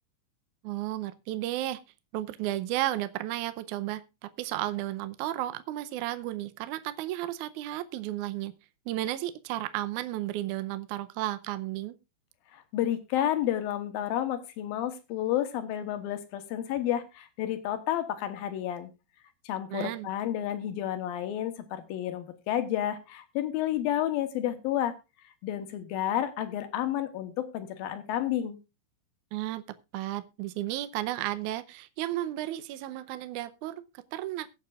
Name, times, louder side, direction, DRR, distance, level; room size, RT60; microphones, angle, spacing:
voice 1, 0.6-1.8 2.1-4.0 4.4-8.5 8.9-11.9 19.7-20.1 29.3-29.6 29.9-34.5, right 14 dB, 90° right, 11 dB, 1.7 m, -33 dB
voice 2, 12.5-18.9 19.5-24.9 25.4-28.6, left 11 dB, 75° left, 9 dB, 2.8 m, -31 dB
22.5 x 7.5 x 2.4 m, 0.26 s
omnidirectional pair, 4.4 m